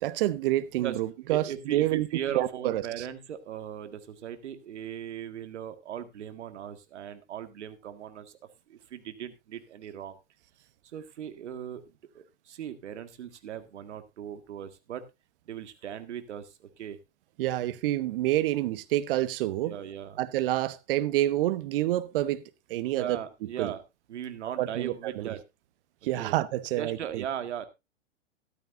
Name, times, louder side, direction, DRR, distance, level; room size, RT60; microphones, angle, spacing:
voice 1, 0.0-2.1 2.3-2.8 17.4-19.7 20.2-22.4 22.7-23.2 23.6-23.7 24.6-25.3 26.0-27.2, right 15 dB, 50° right, 1.0 m, -28 dB
voice 2, 1.3-8.4 8.7-10.2 10.9-11.8 12.1-15.0 15.5-17.0 19.6-20.2 22.9-23.8 24.1-25.4 26.2-26.3 26.8-27.7, right 9 dB, 70° right, 1.8 m, -38 dB
14.0 x 12.5 x 2.5 m
hypercardioid pair, 120°, 36 cm